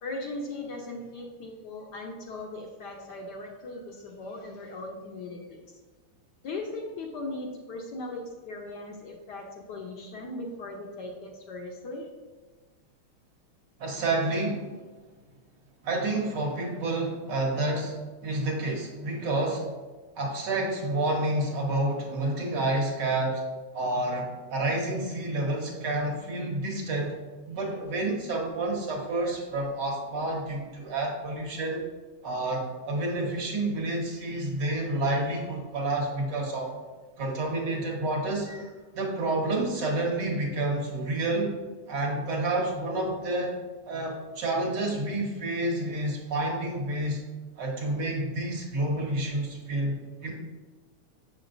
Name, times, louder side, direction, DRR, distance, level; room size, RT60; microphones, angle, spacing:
voice 1, 0.0-5.6 6.4-12.1 35.8-36.1 38.4-38.7 50.2-50.3, left 2 dB, 65° left, 1 dB, 1.1 m, -39 dB
voice 2, 13.8-14.7 15.8-18.0 18.2-19.6 20.2-23.4 23.7-27.1 27.5-31.8 32.2-36.7 37.2-38.5 38.9-41.6 41.9-43.5 43.9-47.2 47.6-50.3, right 2 dB, 60° right, -2 dB, 1.6 m, -29 dB
7.1 x 6.0 x 2.6 m, 1.3 s
omnidirectional pair, 2.3 m